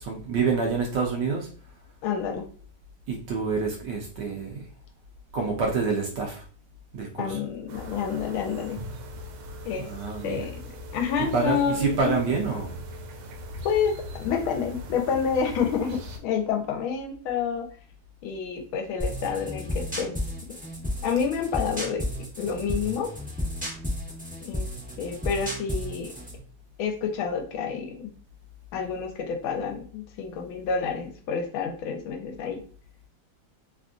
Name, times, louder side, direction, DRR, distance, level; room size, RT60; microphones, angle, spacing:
voice 1, 0.0-1.5 3.1-4.6 5.3-6.4 6.9-7.4 9.7-10.5 11.3-12.7, right 4 dB, 70° right, 0 dB, 1.1 m, -27 dB
voice 2, 2.0-2.5 7.2-8.8 9.6-9.9 10.2-10.6 10.9-12.1 13.6-17.7 18.2-20.1 21.0-22.0 22.4-23.1 24.4-24.7 25.0-26.1 26.8-28.1 28.7-32.6, left 6 dB, 80° left, 3 dB, 1.4 m, -28 dB
sound 1, 7.7-16.2, left 1 dB, 90° right, 1.4 m, -40 dB
sound 2, 19.0-26.4, left 1 dB, 10° right, 0.5 m, -33 dB
3.5 x 2.5 x 2.4 m, 0.43 s
omnidirectional pair, 2.2 m